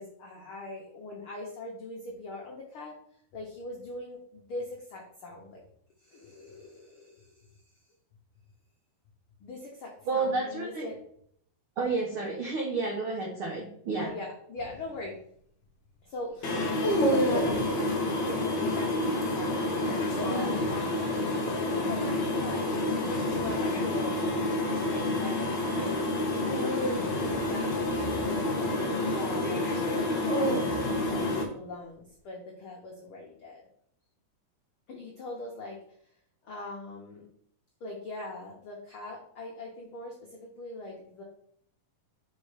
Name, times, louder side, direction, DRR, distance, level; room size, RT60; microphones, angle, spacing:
voice 1, 0.0-2.9 3.3-5.6 6.0-7.6 9.4-11.0 14.0-15.2 16.0-25.9 26.6-28.7 29.0-33.6 34.9-35.8 36.4-37.3 37.8-41.2, left 2 dB, 90° left, -1 dB, 1.1 m, -42 dB
voice 2, 10.1-10.9 11.8-14.1, right 3 dB, 85° right, -1 dB, 1.2 m, -30 dB
sound 1, 14.6-14.9 16.4-17.7 19.8-20.8 23.2-23.6 26.4-28.8 29.8-31.1, right 1 dB, 35° left, 0.9 m, -31 dB
sound 2, 16.4-31.4, left 2 dB, 75° left, 1.0 m, -29 dB
5.4 x 4.3 x 4.9 m, 0.65 s
omnidirectional pair, 3.8 m